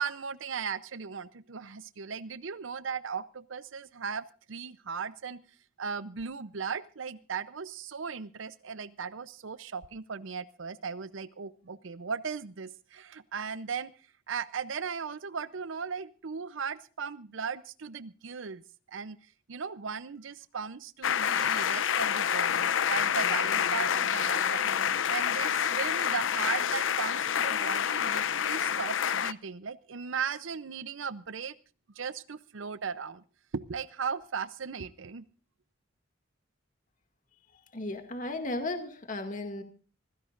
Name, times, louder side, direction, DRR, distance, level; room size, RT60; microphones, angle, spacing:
voice 1, 0.0-5.4 5.8-13.9 14.3-18.6 18.9-31.5 31.9-33.2 33.5-35.3, right 6 dB, 75° right, 15 dB, 0.6 m, -37 dB
sound 1, 21.0-29.3, left 8 dB, 75° left, 0.6 m, -28 dB
voice 2, 37.7-39.6, left 2 dB, 40° left, 6 dB, 2.2 m, -35 dB
25.5 x 16.0 x 2.5 m, 0.37 s
head